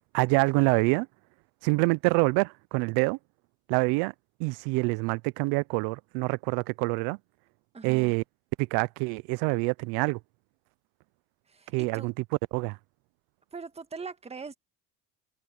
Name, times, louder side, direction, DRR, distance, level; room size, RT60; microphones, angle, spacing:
voice 1, 0.1-1.1 1.6-3.2 3.7-4.1 4.4-7.2 7.8-8.2 8.6-10.2 11.7-12.1 12.5-12.8, right 27 dB, 75° right, 0.6 m, -26 dB
voice 2, 7.7-8.2 11.5-12.1 13.5-14.5, right 4 dB, 15° right, 1.7 m, -41 dB
supercardioid pair, 105°, 38 cm